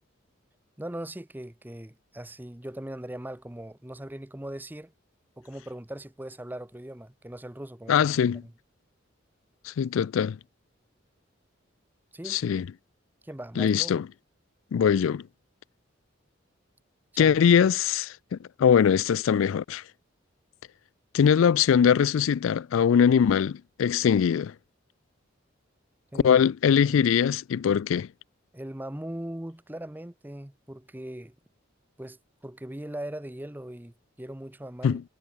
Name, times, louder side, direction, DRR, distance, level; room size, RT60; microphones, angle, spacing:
voice 1, 0.8-4.9 5.4-8.5 12.1-12.4 13.2-14.0 17.1-17.3 26.1-26.3 26.9-27.0 28.5-31.3 32.0-35.0, right 1 dB, 10° right, 0.7 m, -40 dB
voice 2, 7.9-8.4 9.7-10.4 12.3-12.7 13.6-14.1 14.7-15.2 17.2-19.8 21.1-24.5 26.2-28.1 34.8-35.0, left 7 dB, 85° left, 0.3 m, -22 dB
head